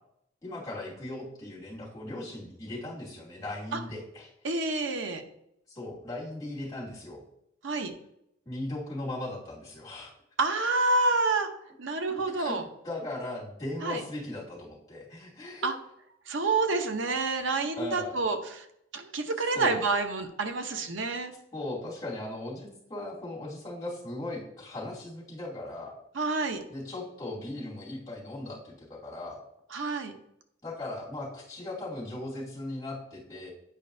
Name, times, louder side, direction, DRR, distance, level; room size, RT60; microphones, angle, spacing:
voice 1, 0.4-4.3 5.7-7.2 8.4-10.1 12.0-12.6 12.8-15.7 17.6-18.1 19.5-19.8 21.5-25.9 26.7-29.4 30.6-33.5, left 1 dB, 20° left, -7 dB, 2.7 m, -38 dB
voice 2, 4.4-5.2 7.6-7.9 10.4-11.5 11.8-12.6 13.8-14.0 15.6-15.7 16.3-18.7 18.9-21.3 26.1-26.6 29.7-30.1, right 3 dB, 75° right, 6 dB, 0.8 m, -28 dB
8.9 x 5.2 x 2.7 m, 0.76 s
head